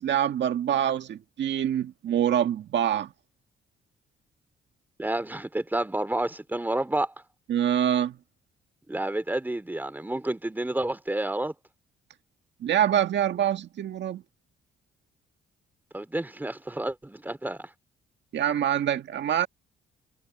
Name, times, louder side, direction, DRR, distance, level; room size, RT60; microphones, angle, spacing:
voice 1, 0.0-3.1 7.5-8.2 12.6-14.2 18.3-19.5, right 10 dB, 65° right, 1.7 m, -25 dB
voice 2, 5.0-7.1 8.9-11.5 15.9-17.7, right 1 dB, 10° right, 2.7 m, -30 dB
cardioid pair, 90°, 20 cm